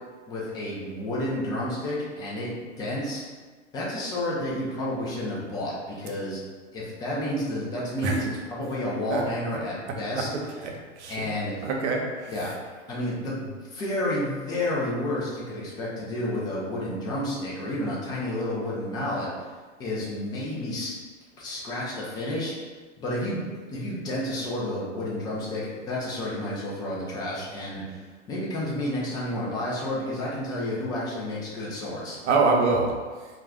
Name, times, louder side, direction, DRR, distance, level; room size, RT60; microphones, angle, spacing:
voice 1, 0.3-3.2 3.7-6.4 6.7-10.3 11.1-11.7 12.3-12.5 12.9-19.5 19.8-20.9 21.4-22.5 23.0-23.4 23.7-32.2, left 1 dB, 10° left, -6 dB, 0.4 m, -30 dB
voice 2, 10.1-10.7 11.0-11.3 11.6-12.4 32.2-32.9, right 4 dB, 65° right, 1 dB, 0.7 m, -25 dB
2.3 x 2.2 x 3.4 m, 1.4 s
hypercardioid pair, 105°, 38 cm